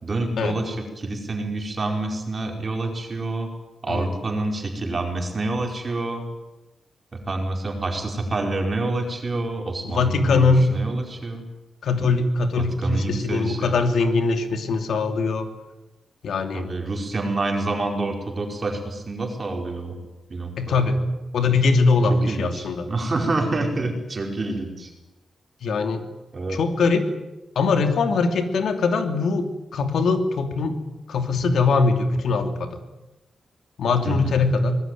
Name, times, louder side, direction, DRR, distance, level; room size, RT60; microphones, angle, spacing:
voice 1, 0.0-3.5 3.8-6.2 7.1-11.4 12.6-13.7 16.5-20.0 20.3-21.0 22.3-24.9 26.3-26.6 34.0-34.4, right 2 dB, 30° right, 3 dB, 4.8 m, -27 dB
voice 2, 9.8-10.7 11.8-15.5 16.2-16.7 20.6-21.0 21.3-22.9 25.6-26.0 26.5-27.1 27.5-30.8 31.1-32.7 33.8-34.8, left 4 dB, 70° left, 6 dB, 2.8 m, -21 dB
24.5 x 20.5 x 9.3 m, 1.0 s
wide cardioid pair, 165°, 0 cm